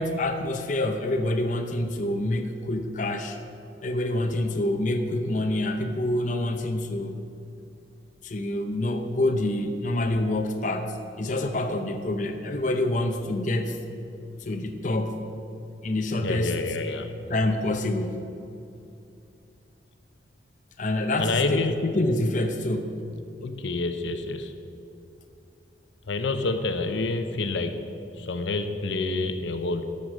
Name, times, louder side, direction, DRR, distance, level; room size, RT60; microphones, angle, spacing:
voice 1, 0.0-3.4 3.8-7.2 8.2-13.8 14.4-15.2 15.8-16.6 17.3-18.3 20.8-22.9, left 1 dB, 45° left, 5 dB, 0.6 m, -27 dB
voice 2, 16.2-17.1 21.2-21.7 23.4-24.5 26.1-27.8 28.2-29.9, left 3 dB, 80° left, 8 dB, 0.7 m, -28 dB
12.0 x 6.6 x 6.3 m, 2.7 s
head